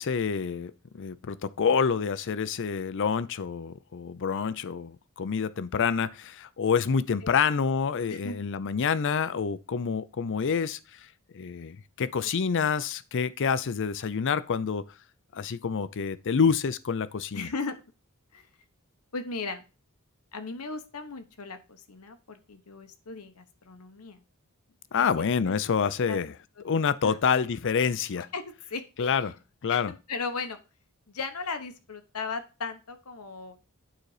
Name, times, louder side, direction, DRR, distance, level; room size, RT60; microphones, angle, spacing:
voice 1, 0.0-10.8 11.3-14.8 15.3-17.5 24.9-26.3 26.6-28.3 29.0-29.4 29.6-29.9, left 6 dB, 55° left, 0.5 m, -27 dB
voice 2, 17.3-17.8 18.3-18.5 19.1-19.6 20.3-24.2 25.0-25.1 25.4-25.6 26.1-26.2 27.0-27.2 28.3-28.4 28.7-29.3 29.7-30.6 31.1-33.6, left 4 dB, 80° left, 1.1 m, -37 dB
9.0 x 4.0 x 4.9 m
head